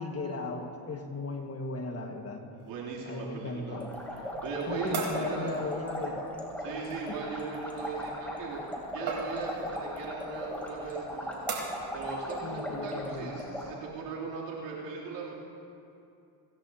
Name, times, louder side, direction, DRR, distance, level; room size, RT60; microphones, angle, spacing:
voice 1, 0.0-2.4 3.1-3.9 4.7-6.2 12.4-13.3, left 3 dB, 35° left, 3 dB, 1.7 m, -36 dB
voice 2, 2.5-3.8 4.4-5.7 6.6-11.4 11.9-15.3, right 4 dB, 90° right, -5 dB, 3.2 m, -38 dB
sound 1, 2.6-13.4, right 4 dB, 65° right, 3.9 m, -42 dB
sound 2, 3.7-13.7, equal, 5° left, 3.1 m, -38 dB
29.0 x 11.0 x 2.8 m, 2.6 s
cardioid pair, 95°, 42 cm